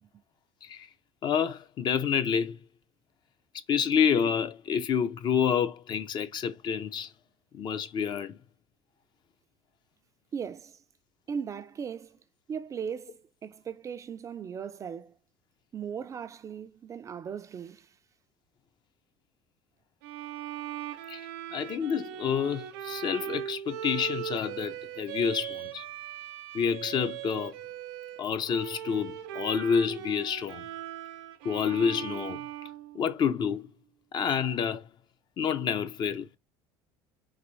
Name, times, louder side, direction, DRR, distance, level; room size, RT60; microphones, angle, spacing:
voice 1, 1.2-2.6 3.7-7.1 7.5-8.4 21.1-21.2 21.5-25.8 26.5-27.5 28.2-30.7 31.4-32.4 32.9-33.7 34.1-34.9 35.4-36.3, left 7 dB, 45° left, 0.5 m, -28 dB
voice 2, 10.3-10.8 11.3-12.2 12.5-15.1 15.7-18.0, right 7 dB, 30° right, 0.3 m, -38 dB
Bowed string instrument, 20.0-33.5, right 11 dB, 90° right, 0.6 m, -39 dB
3.9 x 2.6 x 3.1 m
supercardioid pair, 105°, 11 cm